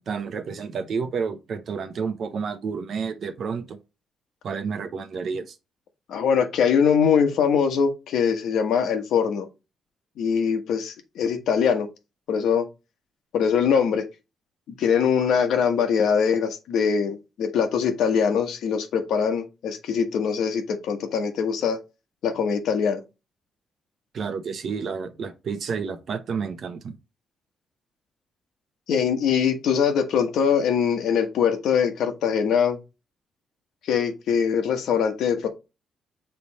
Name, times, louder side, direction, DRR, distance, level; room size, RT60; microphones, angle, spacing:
voice 1, 0.0-3.8 4.4-5.5 24.1-26.9, right 5 dB, 50° right, 0.9 m, -30 dB
voice 2, 6.1-9.5 10.2-11.9 12.3-12.6 13.3-14.0 14.8-21.8 22.2-23.0 28.9-32.8 33.9-35.5, left 7 dB, 85° left, 1.3 m, -22 dB
6.9 x 3.4 x 4.2 m
cardioid pair, 150°, 0 cm